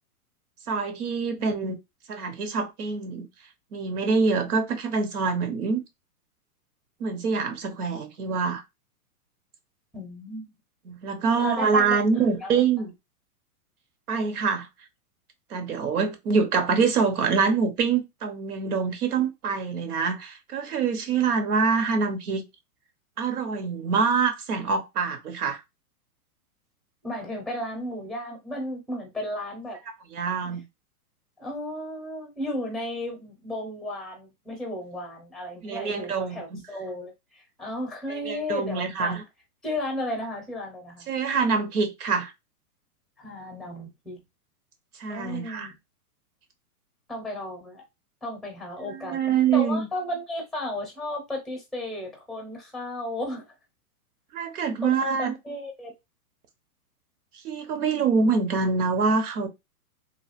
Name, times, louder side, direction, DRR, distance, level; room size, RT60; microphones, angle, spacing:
voice 1, 0.7-1.7 2.1-3.3 3.7-5.8 7.0-8.6 10.9-12.9 14.1-14.7 15.5-22.4 23.2-25.6 30.1-30.6 35.6-36.6 38.2-39.2 41.1-42.3 45.0-45.7 48.8-49.9 54.3-55.3 57.4-59.5, right 5 dB, 75° right, 1.0 m, -25 dB
voice 2, 9.9-10.6 11.4-12.6 27.0-29.8 30.4-30.6 31.4-39.2 39.6-41.1 43.2-44.2 45.1-45.8 47.1-47.8 48.2-49.2 49.5-53.5 54.8-55.9, left 1 dB, ahead, 0.7 m, -34 dB
3.2 x 2.4 x 2.5 m
hypercardioid pair, 145°, 45 cm